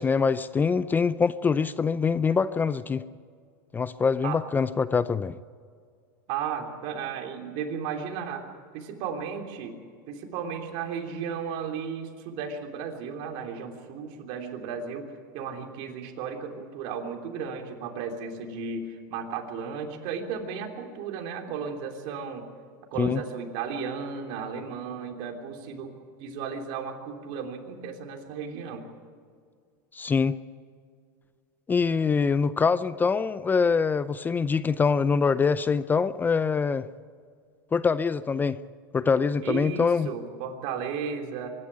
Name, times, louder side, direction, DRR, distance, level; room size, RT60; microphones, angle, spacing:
voice 1, 0.0-3.1 3.7-5.4 23.0-23.2 29.9-30.4 31.7-36.9 37.7-38.6 38.9-40.1, left 5 dB, 15° left, 15 dB, 0.5 m, -24 dB
voice 2, 6.3-8.5 8.7-9.8 10.1-22.5 22.9-25.9 26.2-28.9 39.4-41.6, right 6 dB, 60° right, 4 dB, 3.3 m, -34 dB
24.5 x 12.0 x 9.8 m, 2.1 s
supercardioid pair, 125°, 11 cm